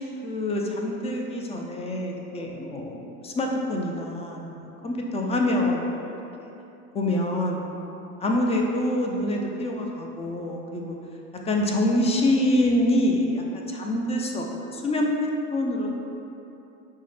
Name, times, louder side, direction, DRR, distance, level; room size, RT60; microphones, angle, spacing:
voice 1, 0.0-6.2 6.9-7.7 8.2-11.0 11.5-15.9, left 1 dB, 15° left, 1 dB, 0.3 m, -26 dB
5.4 x 2.1 x 3.1 m, 2.9 s
hypercardioid pair, 85°, 39 cm